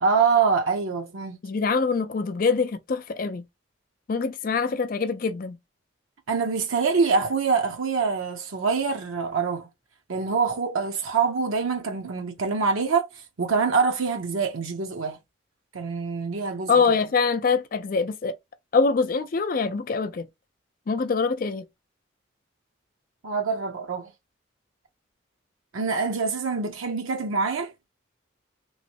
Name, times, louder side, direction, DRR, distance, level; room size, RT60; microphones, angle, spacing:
voice 1, 0.0-1.4 6.3-9.7 10.1-15.2 15.7-16.7 23.2-24.1 25.7-27.7, right 5 dB, 90° right, 0.7 m, -25 dB
voice 2, 1.4-3.4 4.1-5.6 16.7-18.3 18.7-20.3 20.9-21.6, left 4 dB, 45° left, 0.4 m, -24 dB
3.1 x 3.0 x 2.7 m
head